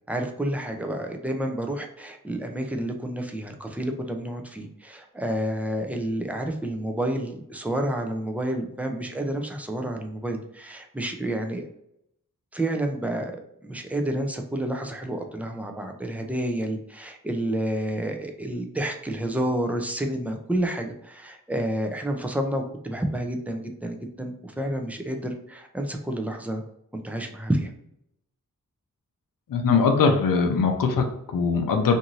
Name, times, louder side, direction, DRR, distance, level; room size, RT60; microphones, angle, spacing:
voice 1, 0.1-11.7 12.5-26.6 26.9-27.7, right 1 dB, 5° right, 4 dB, 0.4 m, -29 dB
voice 2, 29.5-32.0, left 5 dB, 70° left, 4 dB, 0.6 m, -21 dB
2.6 x 2.6 x 3.0 m, 0.75 s
wide cardioid pair, 120°, 34 cm